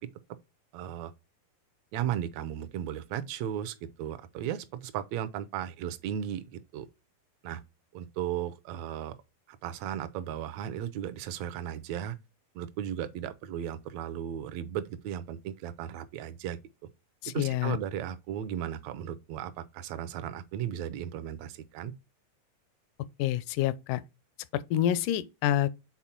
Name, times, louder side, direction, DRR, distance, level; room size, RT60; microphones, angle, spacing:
voice 1, 0.7-1.1 1.9-6.9 7.4-7.6 7.9-9.1 9.5-12.2 12.5-16.6 17.2-21.9, right 10 dB, 80° right, 1.6 m, -35 dB
voice 2, 17.2-17.8 23.2-24.0 24.5-25.7, left 12 dB, 80° left, 2.0 m, -27 dB
7.2 x 4.2 x 4.4 m
omnidirectional pair, 3.9 m